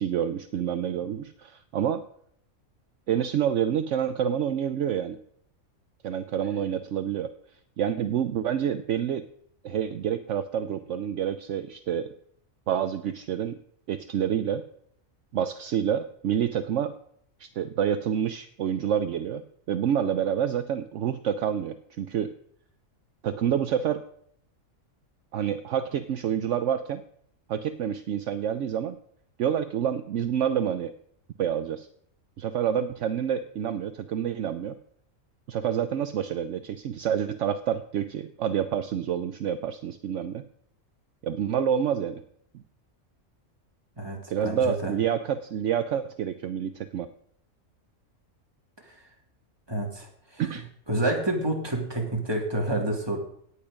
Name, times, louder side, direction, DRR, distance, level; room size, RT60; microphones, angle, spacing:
voice 1, 0.0-2.0 3.1-5.2 6.0-7.3 7.8-9.3 9.6-12.1 12.7-13.6 13.9-14.6 15.3-16.9 17.4-22.3 23.2-24.0 25.3-27.0 27.5-29.0 29.4-30.9 31.4-31.9 32.4-34.7 35.5-40.4 41.2-42.2 44.3-47.1 50.4-50.6, right 9 dB, 70° right, 10 dB, 1.0 m, -28 dB
voice 2, 44.0-44.9 48.8-49.1 49.7-53.2, right 1 dB, 20° right, 0 dB, 2.7 m, -29 dB
17.5 x 8.7 x 5.2 m, 0.67 s
omnidirectional pair, 1.4 m